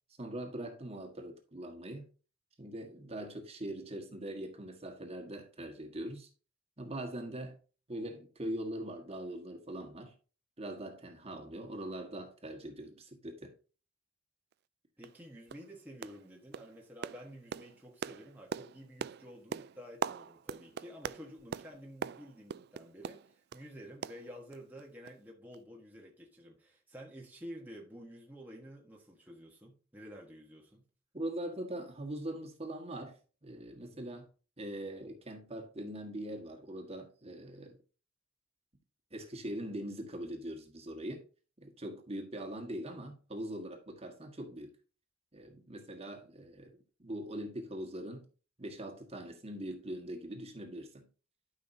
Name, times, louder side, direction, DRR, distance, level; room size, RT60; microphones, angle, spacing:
voice 1, 0.2-2.1 2.6-6.3 6.8-7.6 7.9-10.1 10.6-13.5 31.1-34.3 34.6-37.8 39.1-41.2 41.6-44.7 45.3-48.3 48.6-51.1, right 1 dB, 30° right, 1.6 m, -42 dB
sound 1, 14.5-14.6 15.0-15.2 15.5-15.7 16.0-16.3 16.5-23.7 24.0-24.8 25.1-25.2 25.5-25.6, right 7 dB, 50° right, 0.3 m, -42 dB
voice 2, 15.0-30.9, equal, 10° right, 1.3 m, -50 dB
12.0 x 5.6 x 2.7 m
head